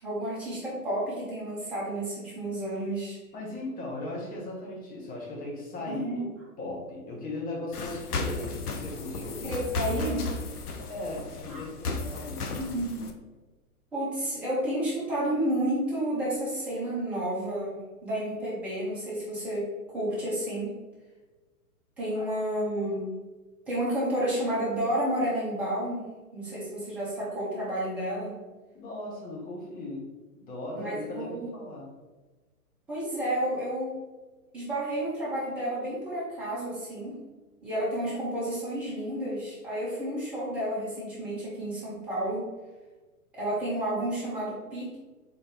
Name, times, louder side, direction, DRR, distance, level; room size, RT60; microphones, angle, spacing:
voice 1, 0.0-3.2 5.9-6.2 9.4-10.3 11.5-11.6 12.6-13.1 13.9-20.8 22.0-23.1 23.7-26.0 26.3-28.3 30.7-31.5 32.9-34.0 34.5-37.2 37.6-42.5 43.3-45.0, right 1 dB, 5° right, -9 dB, 0.4 m, -31 dB
voice 2, 3.3-6.3 6.6-9.6 10.9-12.5 22.1-22.3 28.7-31.9, left 2 dB, 20° left, -2 dB, 1.1 m, -37 dB
sound 1, 7.7-13.1, left 3 dB, 85° left, 0.8 m, -34 dB
4.3 x 3.7 x 3.4 m, 1.3 s
hypercardioid pair, 130°, 44 cm